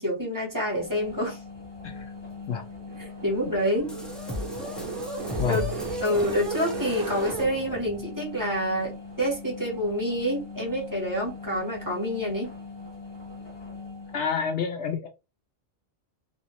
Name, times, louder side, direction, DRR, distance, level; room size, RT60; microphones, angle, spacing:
voice 1, 0.0-1.4 3.0-3.9 5.4-5.7 6.0-12.5, equal, 15° right, 1.4 m, -27 dB
sound 1, 0.7-14.2, left 4 dB, 25° left, 1.0 m, -41 dB
sound 2, 2.8-7.5, right 4 dB, 70° right, 1.0 m, -35 dB
sound 3, 3.9-8.0, left 1 dB, ahead, 0.5 m, -38 dB
voice 2, 5.4-5.8 14.1-15.1, left 6 dB, 70° left, 0.8 m, -29 dB
2.7 x 2.6 x 2.9 m
omnidirectional pair, 1.3 m